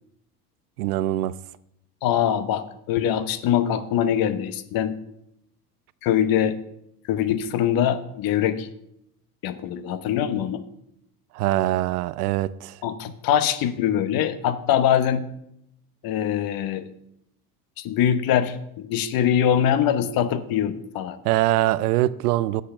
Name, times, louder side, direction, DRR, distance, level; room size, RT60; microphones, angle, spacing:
voice 1, 0.8-1.3 11.3-12.8 21.2-22.6, right 15 dB, 80° right, 0.6 m, -23 dB
voice 2, 2.0-5.0 6.0-6.6 7.1-8.7 9.4-10.6 12.8-15.2 16.0-16.9 17.8-21.2, left 10 dB, 50° left, 0.9 m, -23 dB
8.2 x 6.5 x 5.9 m
hypercardioid pair, 80°, 45 cm